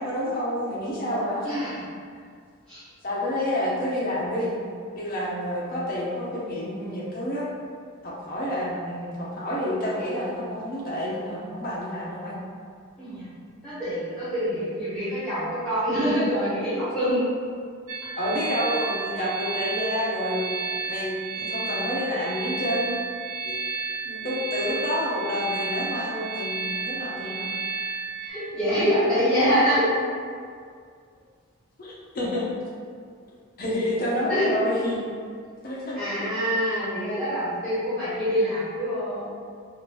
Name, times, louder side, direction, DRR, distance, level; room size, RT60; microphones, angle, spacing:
voice 1, 0.0-1.5 3.0-4.6 4.9-7.5 8.0-12.4 18.2-20.4 20.8-23.0 23.4-23.6 24.0-27.5 31.8-32.5 33.6-35.1 35.6-36.3, left 1 dB, 40° left, -5 dB, 0.6 m, -29 dB
voice 2, 13.6-17.2 19.1-19.2 28.2-29.9 34.3-34.5 35.9-39.3, equal, 5° left, -14 dB, 1.4 m, -25 dB
sound 1, 17.9-28.3, right 4 dB, 85° right, 0.5 m, -32 dB
2.9 x 2.5 x 3.0 m, 2.1 s
head